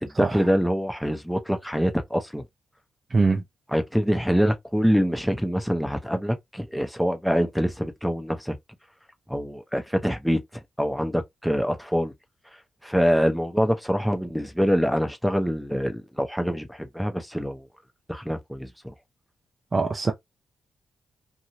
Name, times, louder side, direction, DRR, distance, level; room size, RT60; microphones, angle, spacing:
voice 1, 0.0-2.4 3.7-8.6 9.3-12.1 12.8-17.6 18.1-18.9, equal, ahead, 0.7 m, -25 dB
voice 2, 3.1-3.4 19.7-20.1, right 3 dB, 40° right, 0.5 m, -22 dB
2.7 x 2.6 x 3.0 m
supercardioid pair, 55°, 0 cm